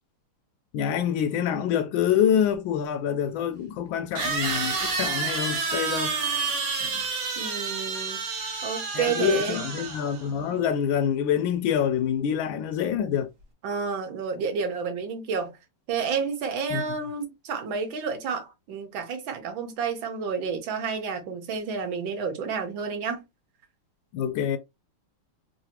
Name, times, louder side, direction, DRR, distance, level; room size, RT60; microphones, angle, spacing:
voice 1, 0.7-6.1 6.8-7.0 8.9-13.3 16.7-16.8 24.1-24.6, left 9 dB, 75° left, 1.3 m, -26 dB
sound 1, 2.5-2.6 4.2-10.3, right 4 dB, 55° right, 1.1 m, -29 dB
voice 2, 7.4-8.2 8.6-9.7 13.6-15.5 15.9-23.2, right 5 dB, 70° right, 1.6 m, -30 dB
3.8 x 2.7 x 2.8 m
omnidirectional pair, 2.3 m